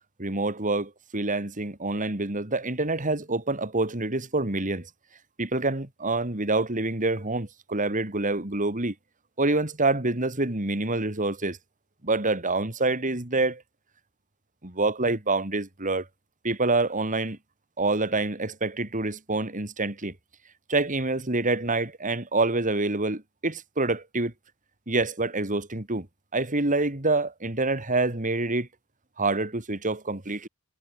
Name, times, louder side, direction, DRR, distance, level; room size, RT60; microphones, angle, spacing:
voice 1, 0.2-4.9 5.4-8.9 9.4-11.6 12.0-13.6 14.6-16.1 16.4-17.4 17.8-20.1 20.7-24.3 24.9-26.1 26.3-28.7 29.2-30.5, right 2 dB, 35° right, 2.9 m, -26 dB
head